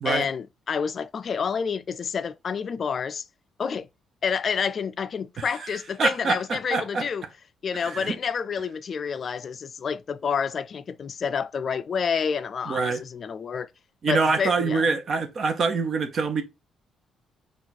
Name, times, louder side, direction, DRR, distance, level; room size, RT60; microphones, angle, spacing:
voice 1, 0.0-3.2 3.6-3.9 4.2-7.2 7.6-13.7 14.1-14.9, left 6 dB, 50° left, 0.3 m, -29 dB
voice 2, 5.4-5.7 6.0-7.0 7.8-8.2 12.7-13.0 14.0-16.4, right 4 dB, 50° right, 0.8 m, -25 dB
4.6 x 2.4 x 4.0 m
cardioid pair, 90°, 0 cm